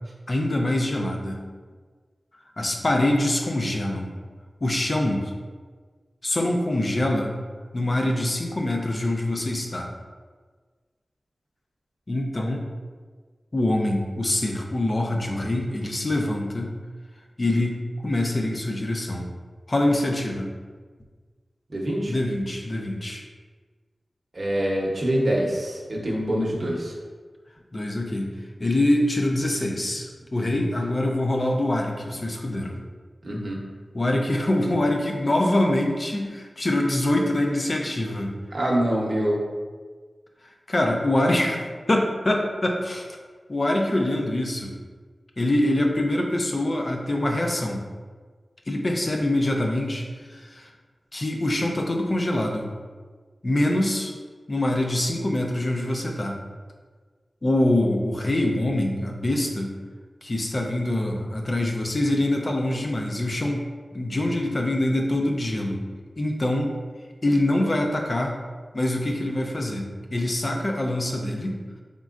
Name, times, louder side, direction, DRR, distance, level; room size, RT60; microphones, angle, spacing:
voice 1, 0.3-1.4 2.6-4.1 4.6-5.3 6.2-7.3 7.7-9.9 12.1-12.6 13.5-16.7 17.4-19.3 19.7-20.5 22.1-23.2 27.7-28.3 28.6-32.8 33.9-38.3 40.7-43.1 43.5-44.7 45.4-47.8 48.7-50.1 50.3-50.7 51.1-52.7 53.4-54.1 54.5-56.4 57.4-59.7 60.2-63.7 63.9-65.8 66.2-66.7 67.2-68.4 68.7-71.6, left 1 dB, 40° left, 1 dB, 0.5 m, -24 dB
voice 2, 21.7-22.1 24.3-26.9 33.2-33.6 38.5-39.4, equal, 50° right, -3 dB, 0.8 m, -25 dB
4.1 x 3.7 x 2.5 m, 1.5 s
wide cardioid pair, 100°, 0 cm